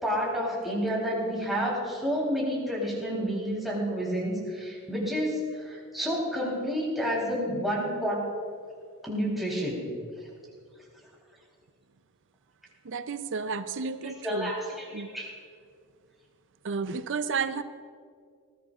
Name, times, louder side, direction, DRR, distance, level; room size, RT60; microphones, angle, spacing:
voice 1, 0.0-8.2 9.0-9.8 14.0-15.3, equal, ahead, -5 dB, 3.6 m, -30 dB
voice 2, 12.8-14.5 14.9-15.1 16.6-17.6, right 5 dB, 60° right, 12 dB, 0.6 m, -32 dB
20.0 x 16.5 x 2.5 m, 2.1 s
head